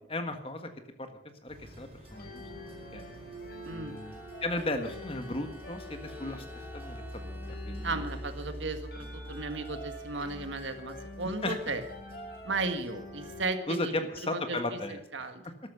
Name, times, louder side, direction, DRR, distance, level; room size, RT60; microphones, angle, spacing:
voice 1, 0.1-0.7 1.0-2.4 2.9-3.0 3.7-8.0 11.4-11.7 13.7-15.3, left 2 dB, 30° left, 7 dB, 1.5 m, -36 dB
sound 1, 1.5-13.5, equal, 30° right, 4.0 m, -46 dB
sound 2, 2.0-13.6, left 1 dB, 55° left, 5.3 m, -46 dB
voice 2, 3.6-4.0 6.2-6.4 7.8-11.8 12.4-14.8 15.1-15.4, right 3 dB, 90° right, 8 dB, 1.7 m, -35 dB
Bowed string instrument, 3.7-8.9, equal, 10° right, 0.8 m, -54 dB
13.0 x 12.5 x 6.7 m, 0.79 s
head